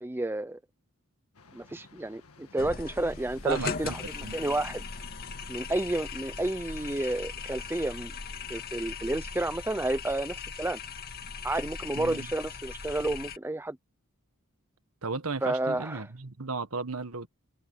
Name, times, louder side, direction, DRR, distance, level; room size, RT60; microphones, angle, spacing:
voice 1, 0.0-0.6 1.5-4.8 5.5-8.1 8.5-10.8 11.4-13.8 15.4-16.1, right 1 dB, 10° right, 0.5 m, -31 dB
sound 1, 1.3-8.5, left 3 dB, 70° left, 1.8 m, -53 dB
sound 2, 2.6-13.4, left 5 dB, 45° left, 1.9 m, -39 dB
voice 2, 3.4-4.0 4.2-4.3 11.9-12.3 15.0-17.3, right 4 dB, 70° right, 1.6 m, -34 dB
head